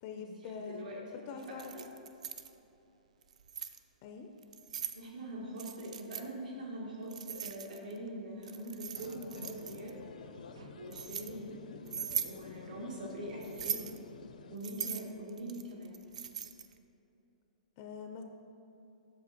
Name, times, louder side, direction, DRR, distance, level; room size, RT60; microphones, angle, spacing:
voice 1, 0.0-1.7 4.0-4.3 17.8-18.2, left 5 dB, 25° left, 5 dB, 0.4 m, -44 dB
voice 2, 0.7-1.0 1.5-1.8 4.9-10.0 10.8-11.6 12.2-13.8 14.5-16.0, right 1 dB, 85° right, -3 dB, 1.9 m, -43 dB
Keys jangling, 1.4-2.5 3.2-3.8 4.4-5.0 5.6-6.3 7.1-8.0 8.4-9.9 10.5-11.3 11.9-12.4 13.4-14.0 14.6-16.7, right 7 dB, 60° right, 0.4 m, -40 dB
sound 1, 8.9-14.6, left 4 dB, 85° left, 0.6 m, -50 dB
7.6 x 6.7 x 4.3 m, 2.9 s
hypercardioid pair, 175°, 4 cm